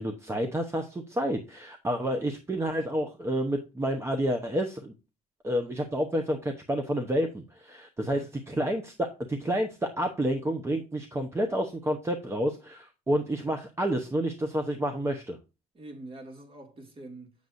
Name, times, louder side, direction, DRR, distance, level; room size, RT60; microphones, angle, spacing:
voice 1, 0.0-4.9 5.4-15.4, equal, 15° right, 0.9 m, -29 dB
voice 2, 8.0-8.4 15.7-17.3, right 2 dB, 30° right, 2.2 m, -45 dB
7.9 x 6.9 x 2.6 m
cardioid pair, 110°, 17 cm